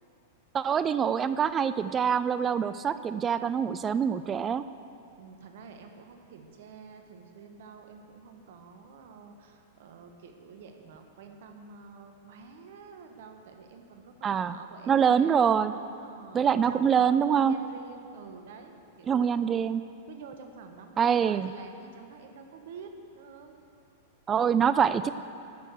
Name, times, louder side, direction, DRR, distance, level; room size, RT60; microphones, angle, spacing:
voice 1, 0.5-4.6 14.2-14.5 14.9-15.7 16.3-17.6 19.1-19.8 21.0-21.5 24.3-25.1, right 7 dB, 25° right, 13 dB, 0.3 m, -25 dB
voice 2, 5.2-15.4 15.7-19.3 20.1-23.6, right 5 dB, 65° right, 5 dB, 1.1 m, -48 dB
11.0 x 6.6 x 8.0 m, 2.6 s
hypercardioid pair, 100°, 0 cm